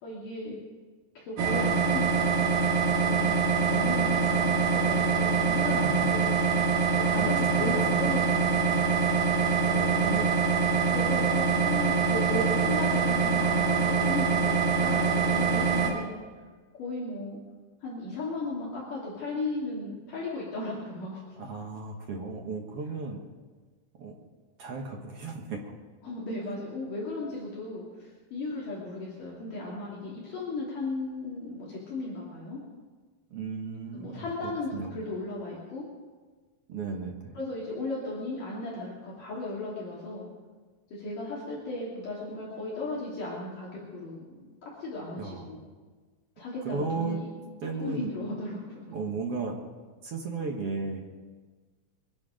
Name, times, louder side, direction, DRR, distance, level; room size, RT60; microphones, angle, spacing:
voice 1, 0.0-0.6 1.2-2.5 2.8-3.3 3.6-6.3 6.9-8.9 10.9-16.1 16.8-17.4 17.8-21.2 26.0-32.6 33.9-35.9 37.3-40.3 40.9-45.7 46.4-47.3 47.8-48.6 48.9-49.0, left 2 dB, 55° left, -6 dB, 4.2 m, -36 dB
sound 1, 1.4-15.9, right 5 dB, 80° right, 4.2 m, -24 dB
voice 2, 5.8-6.2 7.2-7.3 7.6-7.8 8.0-8.3 9.7-10.4 21.4-23.2 24.0-24.2 24.6-25.7 33.3-35.0 36.7-37.4 45.2-45.5 46.6-47.2 47.6-48.1 48.9-49.5 50.0-51.0, right 4 dB, 55° right, 1 dB, 1.7 m, -35 dB
23.0 x 11.5 x 5.1 m, 1.4 s
omnidirectional pair, 4.5 m